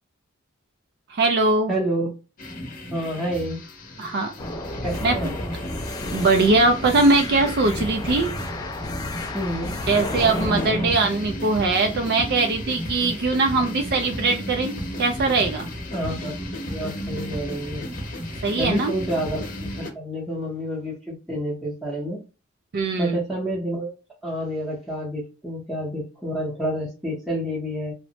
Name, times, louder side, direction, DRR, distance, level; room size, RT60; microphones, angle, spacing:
voice 1, 1.1-1.7 4.0-4.4 5.0-5.2 6.1-8.3 9.9-15.7 18.4-18.9 22.7-23.2, right 3 dB, 55° right, 0.4 m, -21 dB
voice 2, 1.7-2.1 2.9-3.6 4.8-5.3 9.3-9.8 15.9-16.3 16.7-17.8 18.6-19.5 19.8-22.2 23.0-23.9 24.2-27.9, equal, ahead, 0.7 m, -28 dB
sound 1, 2.4-19.9, equal, 45° left, 0.7 m, -34 dB
sound 2, 4.4-10.9, left 1 dB, 20° left, 0.3 m, -31 dB
3.0 x 2.0 x 2.7 m
head